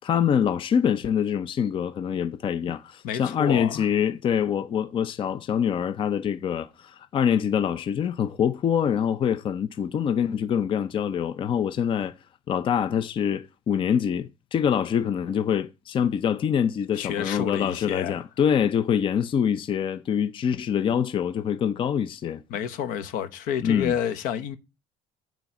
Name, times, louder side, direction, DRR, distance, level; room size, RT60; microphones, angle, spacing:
voice 1, 0.0-12.1 12.5-22.4 23.6-24.0, left 8 dB, 40° left, 0.6 m, -25 dB
voice 2, 3.0-3.9 16.9-18.2 22.5-24.6, left 9 dB, 80° left, 1.1 m, -29 dB
9.0 x 4.0 x 7.1 m
cardioid pair, 130°, 14 cm